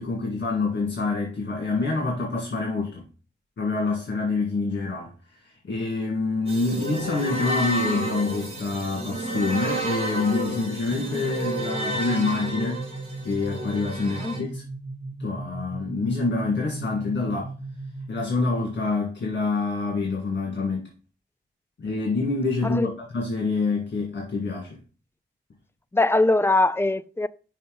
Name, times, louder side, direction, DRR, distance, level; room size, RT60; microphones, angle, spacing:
voice 1, 0.0-3.1 3.6-12.9 13.2-14.6 15.2-17.5 18.1-20.9 21.8-24.8, left 3 dB, 65° left, 1.7 m, -26 dB
sound 1, 6.5-14.4, right 1 dB, 30° right, 2.2 m, -31 dB
sound 2, 10.9-18.5, right 2 dB, 5° right, 1.4 m, -37 dB
voice 2, 14.0-14.4 22.6-23.0 25.9-27.3, left 2 dB, 10° left, 0.3 m, -23 dB
5.6 x 5.2 x 3.8 m
wide cardioid pair, 110°, 20 cm